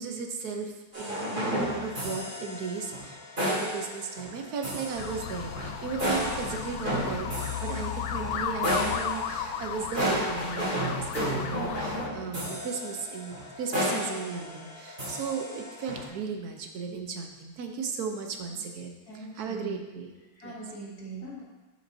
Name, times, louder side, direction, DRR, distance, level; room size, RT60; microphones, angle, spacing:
voice 1, 0.0-3.2 3.5-20.1 20.4-20.5, right 5 dB, 60° right, 4 dB, 1.2 m, -36 dB
sound 1, 0.9-16.0, equal, 25° right, 2.9 m, -33 dB
sound 2, 5.0-12.1, left 8 dB, 80° left, 0.8 m, -34 dB
voice 2, 19.1-19.8 20.4-21.4, right 3 dB, 55° left, -4 dB, 2.0 m, -41 dB
11.0 x 6.4 x 2.7 m, 1.1 s
omnidirectional pair, 2.1 m